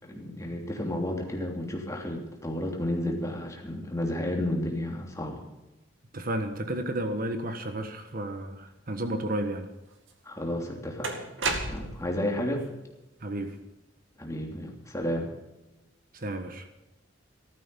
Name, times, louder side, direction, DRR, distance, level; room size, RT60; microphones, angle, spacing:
voice 1, 0.0-5.4 10.2-11.2 11.7-12.6 14.2-15.3, left 1 dB, 15° left, 0 dB, 3.1 m, -32 dB
voice 2, 6.1-9.7 13.2-13.6 16.1-16.7, right 1 dB, 50° right, 7 dB, 1.4 m, -32 dB
sound 1, 10.1-10.2 11.0-12.1, right 3 dB, 80° right, 2.3 m, -31 dB
15.0 x 13.5 x 5.4 m, 1.0 s
head